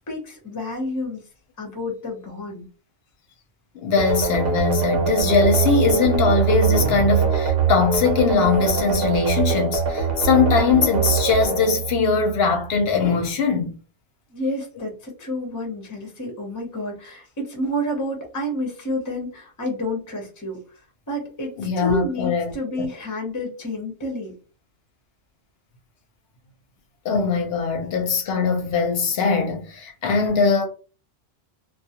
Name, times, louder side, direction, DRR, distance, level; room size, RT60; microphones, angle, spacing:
voice 1, 0.1-1.2 1.6-2.7 14.3-24.3, left 1 dB, 25° left, 0.4 m, -29 dB
voice 2, 3.7-13.7 21.6-22.8 27.0-30.6, left 5 dB, 60° left, 0.7 m, -21 dB
sound 1, 4.0-12.7, right 6 dB, 60° right, 0.7 m, -23 dB
2.3 x 2.0 x 2.7 m
omnidirectional pair, 1.3 m